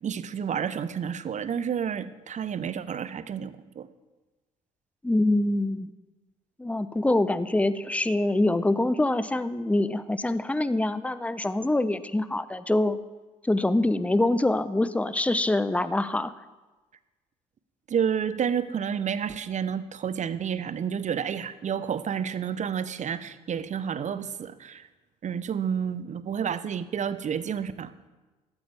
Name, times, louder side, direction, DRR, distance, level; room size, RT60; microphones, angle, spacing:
voice 1, 0.0-3.9 17.9-24.9 25.2-27.9, right 7 dB, 40° right, 14 dB, 1.0 m, -30 dB
voice 2, 5.0-5.9 6.6-13.0 13.4-16.3, left 2 dB, 5° left, 15 dB, 0.8 m, -25 dB
19.5 x 13.0 x 3.5 m, 1.2 s
figure-of-eight pair, 50°, 19 cm